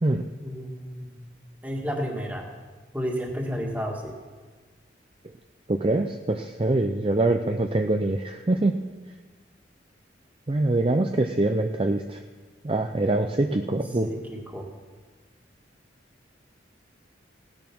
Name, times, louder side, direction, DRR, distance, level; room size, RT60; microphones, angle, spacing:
voice 1, 0.4-1.2 1.6-2.4 2.9-4.1 13.5-14.7, equal, 10° right, 0 dB, 1.8 m, -32 dB
voice 2, 5.7-8.8 10.5-12.2 12.6-14.1, right 2 dB, 30° right, 6 dB, 0.5 m, -24 dB
17.0 x 10.5 x 6.1 m, 1.4 s
head